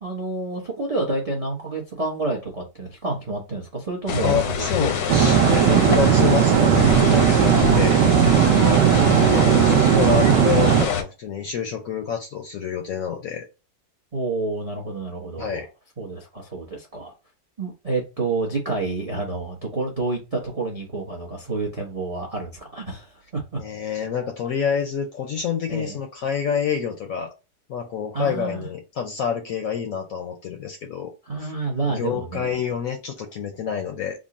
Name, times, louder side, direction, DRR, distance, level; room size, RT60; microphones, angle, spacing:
voice 1, 0.0-4.9 7.7-7.8 8.4-9.3 14.1-15.7 16.0-17.1 17.6-23.4 25.7-26.0 28.1-28.7 31.3-32.6, right 3 dB, 45° right, 0.4 m, -29 dB
sound 1, 4.1-11.0, left 6 dB, 85° left, 1.3 m, -25 dB
voice 2, 4.2-8.0 9.2-13.4 15.4-15.7 23.6-27.3 27.7-31.1 31.4-31.5 31.9-34.2, left 7 dB, 65° left, 0.8 m, -27 dB
sound 2, 5.1-10.8, right 10 dB, 80° right, 1.2 m, -17 dB
3.7 x 2.1 x 3.6 m
omnidirectional pair, 1.9 m